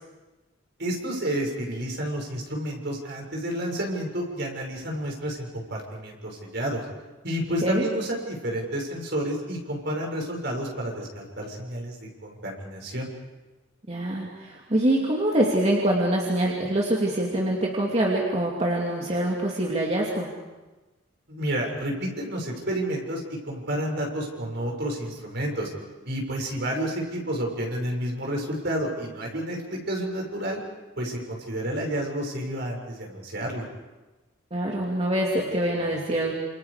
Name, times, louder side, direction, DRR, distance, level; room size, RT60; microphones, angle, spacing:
voice 1, 0.8-6.8 7.2-13.1 21.3-25.7 26.1-30.6 31.0-33.6, right 1 dB, 60° right, 0 dB, 6.6 m, -30 dB
voice 2, 13.9-20.3 34.5-36.3, right 1 dB, 35° right, -2 dB, 2.8 m, -25 dB
29.0 x 28.0 x 5.1 m, 1.1 s
head